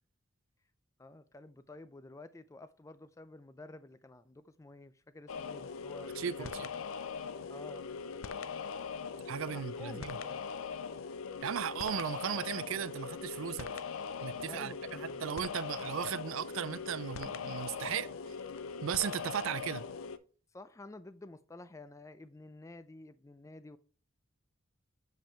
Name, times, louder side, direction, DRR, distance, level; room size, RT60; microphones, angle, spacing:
voice 1, 1.0-6.5 7.5-7.9 9.5-10.4 14.3-15.2 20.5-23.8, left 2 dB, 15° left, 0.3 m, -51 dB
sound 1, 5.3-20.2, left 6 dB, 80° left, 0.5 m, -41 dB
voice 2, 6.2-6.7 9.3-10.2 11.4-13.7 14.2-18.1 18.8-19.8, right 8 dB, 75° right, 0.4 m, -36 dB
7.3 x 5.3 x 3.3 m
head